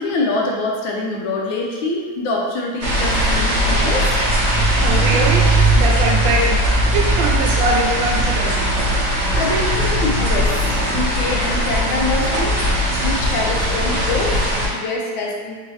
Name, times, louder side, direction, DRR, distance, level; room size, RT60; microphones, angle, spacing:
voice 1, 0.0-4.2 9.3-15.6, left 2 dB, 85° left, -1 dB, 1.4 m, -25 dB
sound 1, 2.8-14.7, right 1 dB, 45° right, 0.8 m, -18 dB
voice 2, 4.8-5.5 5.8-6.6 6.9-8.7, right 3 dB, 80° right, 0 dB, 1.3 m, -22 dB
3.7 x 2.7 x 3.1 m, 1.5 s
omnidirectional pair, 2.1 m